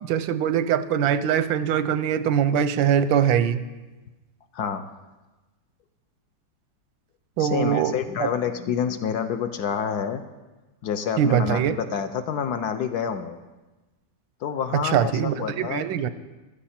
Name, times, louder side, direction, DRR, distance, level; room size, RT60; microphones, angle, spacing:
voice 1, 0.1-3.6 7.4-8.3 11.2-11.7 14.7-16.1, right 9 dB, 85° right, 13 dB, 1.4 m, -22 dB
voice 2, 4.5-4.9 7.4-10.2 10.8-13.4 14.4-16.1, left 7 dB, 65° left, 8 dB, 1.1 m, -28 dB
15.0 x 12.5 x 4.3 m, 1.1 s
omnidirectional pair, 2.1 m